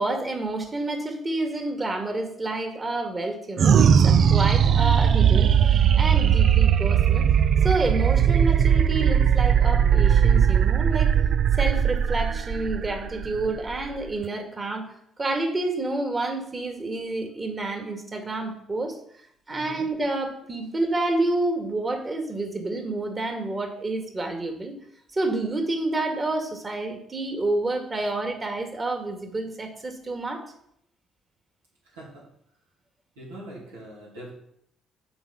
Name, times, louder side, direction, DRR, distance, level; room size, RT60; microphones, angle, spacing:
voice 1, 0.0-7.3 7.6-11.1 11.6-14.9 15.2-19.0 19.5-24.7 25.1-30.4, right 2 dB, 30° right, 4 dB, 2.0 m, -29 dB
sound 1, 3.6-14.3, right 8 dB, 55° right, 0.4 m, -19 dB
voice 2, 13.2-13.5 19.5-19.8 31.8-32.3 33.2-34.3, right 1 dB, 85° right, -4 dB, 2.6 m, -43 dB
7.1 x 4.4 x 5.8 m, 0.70 s
hypercardioid pair, 50°, 0 cm